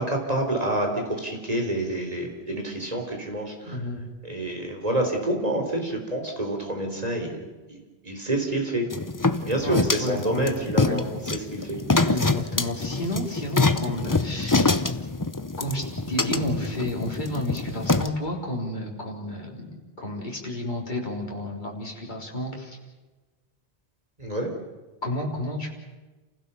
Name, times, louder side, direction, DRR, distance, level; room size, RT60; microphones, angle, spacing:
voice 1, 0.0-3.8 4.2-8.9 9.4-11.0 11.3-11.8 24.2-24.5, right 1 dB, 35° right, 2 dB, 3.9 m, -28 dB
voice 2, 3.6-4.1 9.6-10.5 10.8-11.0 12.0-14.8 15.6-22.8 25.0-25.8, left 1 dB, 45° left, -1 dB, 3.9 m, -31 dB
sound 1, 8.9-18.1, left 3 dB, 20° left, 0.7 m, -25 dB
29.0 x 16.0 x 7.0 m, 1.2 s
omnidirectional pair, 1.1 m